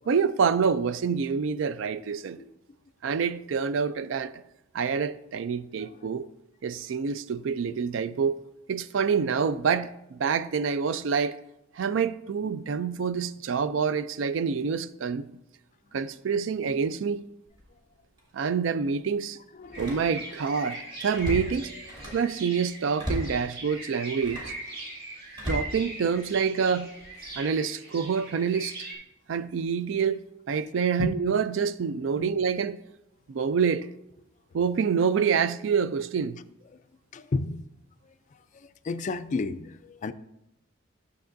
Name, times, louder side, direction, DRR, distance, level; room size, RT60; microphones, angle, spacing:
voice 1, 0.1-2.4 3.0-4.3 4.7-6.3 6.6-8.4 8.7-11.4 11.8-15.3 15.9-17.2 18.3-19.4 19.8-21.7 22.1-24.5 25.4-26.9 27.4-28.8 29.3-30.2 30.5-32.8 33.3-33.9 34.5-36.4, right 6 dB, 65° right, 0.4 m, -27 dB
Slam, 17.5-17.7 18.2-18.3 19.6-20.4 20.8-22.3 23.0-23.4 24.1-24.6 25.3-26.4 27.0-27.3, equal, 25° right, 2.5 m, -36 dB
voice 2, 19.5-20.0 31.0-31.2 32.2-32.4 36.7-36.8 37.1-37.7 38.0-40.1, left 3 dB, 40° left, 0.3 m, -33 dB
sound 1, 19.7-29.0, right 1 dB, 50° right, 2.2 m, -41 dB
11.5 x 6.7 x 2.6 m
head